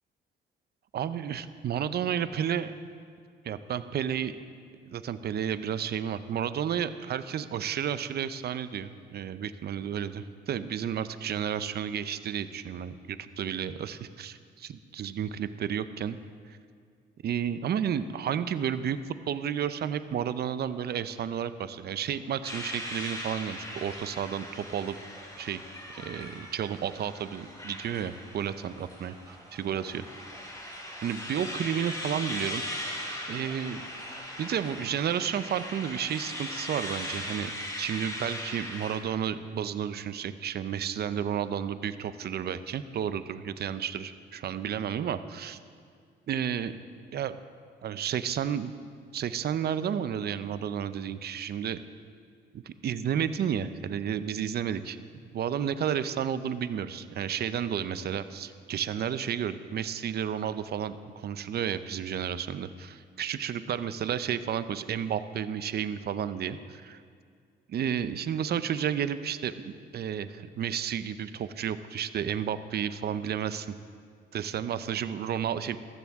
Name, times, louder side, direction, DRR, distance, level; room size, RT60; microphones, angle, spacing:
voice 1, 0.9-2.7 3.4-4.3 4.9-16.2 16.5-16.6 17.2-19.0 19.3-25.0 25.4-25.6 25.9-30.0 31.0-33.8 34.4-37.5 37.8-45.6 46.3-46.8 47.1-47.4 47.8-48.7 49.1-51.8 52.5-55.0 55.3-67.0 67.7-73.8 74.3-75.8, right 8 dB, 55° right, 13 dB, 0.6 m, -32 dB
sound 1, 21.9-40.0, right 1 dB, 20° right, 2.4 m, -55 dB
sound 2, 22.4-39.0, left 1 dB, 15° left, 2.8 m, -39 dB
14.5 x 14.0 x 3.6 m, 2.1 s
cardioid pair, 90°, 20 cm